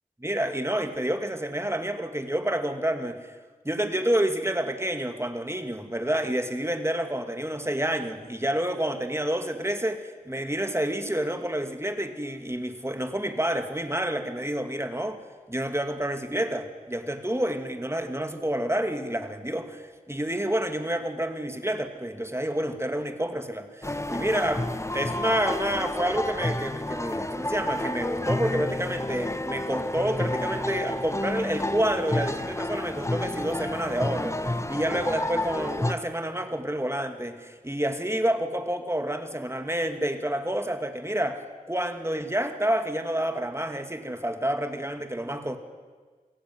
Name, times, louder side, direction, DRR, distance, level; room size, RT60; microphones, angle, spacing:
voice 1, 0.2-3.4 3.6-15.2 15.5-24.7 24.9-45.6, right 1 dB, 15° right, 7 dB, 2.5 m, -29 dB
sound 1, 23.8-35.9, left 1 dB, 20° left, 1.2 m, -30 dB
28.0 x 17.5 x 9.6 m, 1.5 s
wide cardioid pair, 55°, 15 cm